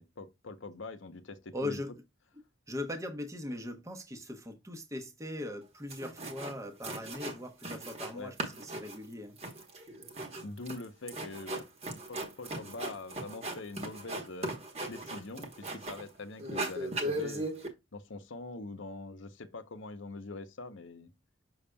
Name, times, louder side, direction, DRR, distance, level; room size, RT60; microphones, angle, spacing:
voice 1, 0.0-1.8 8.1-8.3 10.4-14.6 14.9-17.5 17.9-21.1, left 2 dB, 65° left, 0.8 m, -44 dB
voice 2, 1.5-1.9 2.7-9.4, left 1 dB, 15° right, 0.9 m, -40 dB
sound 1, 5.6-5.7 5.9-6.6 6.8-8.1 8.4-16.1 16.4-17.7, right 1 dB, 30° right, 1.1 m, -38 dB
6.8 x 6.3 x 2.2 m
head